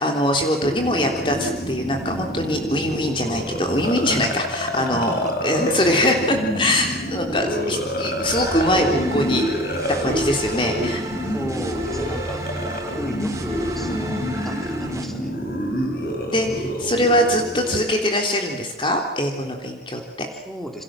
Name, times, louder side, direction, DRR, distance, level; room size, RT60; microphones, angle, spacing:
voice 1, 0.0-11.0 16.3-20.3, left 1 dB, 30° left, 2 dB, 3.4 m, -22 dB
sound 1, 0.6-17.8, equal, 50° left, 6.2 m, -28 dB
voice 2, 4.8-5.3 11.3-12.4 13.0-15.3 20.3-20.8, equal, ahead, 2 dB, 4.4 m, -34 dB
sound 2, 8.2-15.0, right 1 dB, 20° right, 4.0 m, -32 dB
29.0 x 27.0 x 7.6 m, 0.96 s
head